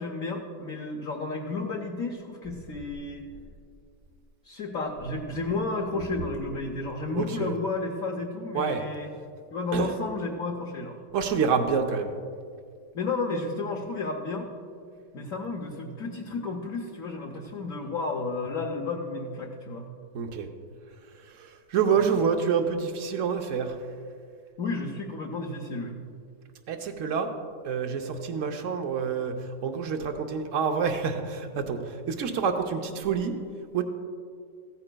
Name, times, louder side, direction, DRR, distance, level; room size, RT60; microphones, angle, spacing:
voice 1, 0.0-3.3 4.4-9.1 9.5-11.0 12.9-14.5 15.1-19.9 21.9-22.1 24.6-26.0, left 3 dB, 55° left, 0 dB, 1.0 m, -32 dB
voice 2, 7.1-7.5 8.5-8.8 9.7-9.9 11.1-12.1 20.1-20.5 21.7-23.8 26.7-27.3 27.6-29.3 29.6-33.3 33.7-33.8, right 6 dB, 60° right, 5 dB, 0.9 m, -27 dB
15.5 x 14.0 x 2.3 m, 2.2 s
omnidirectional pair, 2.1 m